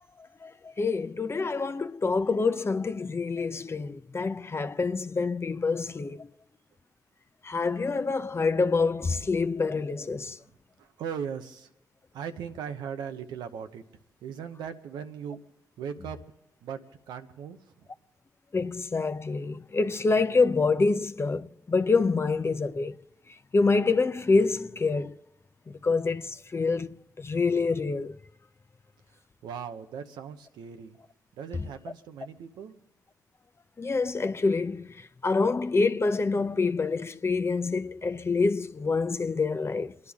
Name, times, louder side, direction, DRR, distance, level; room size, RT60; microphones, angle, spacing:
voice 1, 0.4-6.3 7.4-10.4 18.5-22.9 23.5-25.2 25.8-28.2 33.8-34.9 35.2-39.9, left 4 dB, 35° left, 0.7 m, -26 dB
voice 2, 10.8-11.7 12.1-13.8 14.2-15.4 15.8-16.2 16.6-16.8 17.1-17.9 29.1-31.0 31.3-32.8, right 7 dB, 85° right, 0.9 m, -38 dB
27.5 x 11.0 x 3.6 m
supercardioid pair, 50°, 7 cm